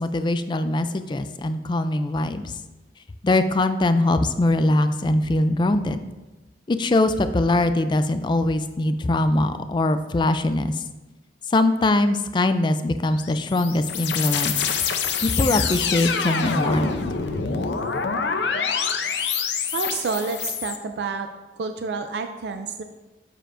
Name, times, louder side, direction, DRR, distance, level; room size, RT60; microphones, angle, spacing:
voice 1, 0.0-2.5 3.2-6.0 6.7-10.7 11.5-14.5 15.2-16.9, left 2 dB, 25° left, 10 dB, 0.3 m, -22 dB
sound 1, 13.1-20.8, left 6 dB, 80° left, 0.6 m, -26 dB
voice 2, 19.7-21.3 21.6-22.8, right 4 dB, 65° right, 7 dB, 0.4 m, -29 dB
7.5 x 6.8 x 2.5 m, 1.1 s
head